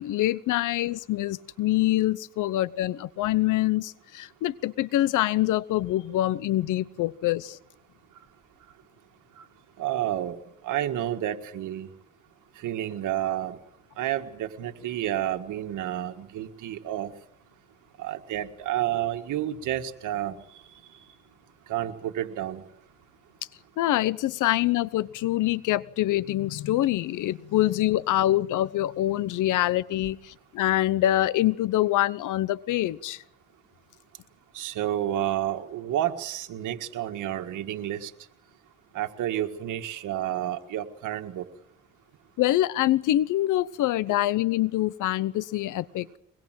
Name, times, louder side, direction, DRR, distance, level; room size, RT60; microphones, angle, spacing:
voice 1, 0.0-7.6 23.8-33.2 42.4-46.1, left 14 dB, 85° left, 19 dB, 0.9 m, -25 dB
voice 2, 9.8-11.9 12.6-13.6 14.0-17.1 18.0-20.6 21.7-22.6 34.5-38.1 38.9-41.5, right 12 dB, 85° right, 5 dB, 1.8 m, -30 dB
23.0 x 21.5 x 7.6 m, 0.74 s
cardioid pair, 90°, 30 cm